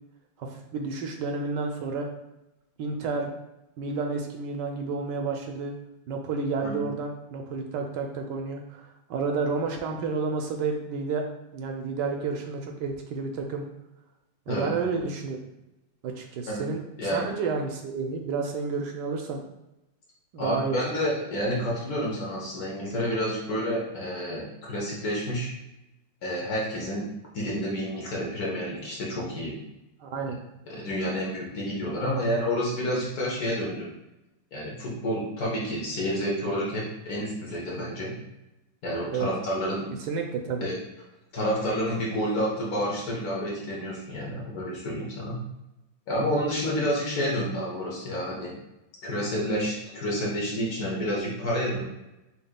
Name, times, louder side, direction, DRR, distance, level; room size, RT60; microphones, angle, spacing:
voice 1, 0.4-2.1 2.8-3.3 3.8-5.7 6.1-11.2 11.5-13.7 14.5-15.4 16.0-19.4 20.3-20.9 30.0-30.4 39.1-39.3 40.0-40.7, right 4 dB, 75° right, 3 dB, 1.2 m, -30 dB
voice 2, 14.5-14.9 16.5-16.7 17.0-17.3 20.4-25.5 26.2-27.1 27.3-29.6 30.7-33.9 34.5-38.2 38.8-39.9 40.6-40.8 41.3-45.4 46.1-48.5 49.0-51.8, equal, 55° left, -3 dB, 1.5 m, -29 dB
6.9 x 3.0 x 2.2 m, 0.93 s
omnidirectional pair, 2.1 m